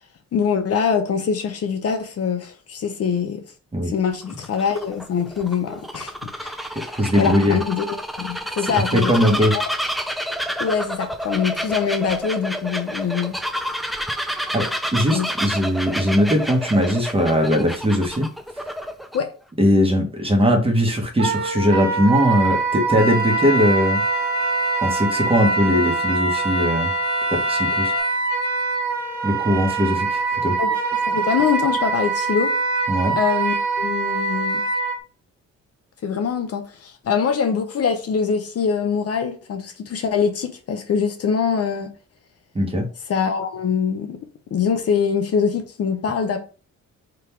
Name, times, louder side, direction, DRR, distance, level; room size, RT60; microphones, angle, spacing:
voice 1, 0.3-3.4 3.9-6.8 7.2-9.6 10.6-13.4 15.1-15.3 19.1-19.3 30.6-30.8 31.1-32.5 33.2-34.6 36.0-41.9 43.1-44.2 44.5-46.4, left 6 dB, 50° left, 0.8 m, -23 dB
Bird vocalization bird call bird song, 4.1-19.2, equal, ahead, 0.4 m, -29 dB
voice 2, 6.9-7.6 8.9-9.5 14.2-14.7 14.9-18.3 19.6-24.0 24.8-26.9 27.3-27.9 29.2-30.6 32.9-33.2 42.5-42.9, equal, 20° right, 1.4 m, -20 dB
Wind instrument woodwind instrument, 21.2-35.0, right 4 dB, 65° right, 1.7 m, -23 dB
sound 1, 23.0-28.0, left 5 dB, 80° left, 1.6 m, -32 dB
3.7 x 2.9 x 4.5 m
cardioid pair, 90°, 30 cm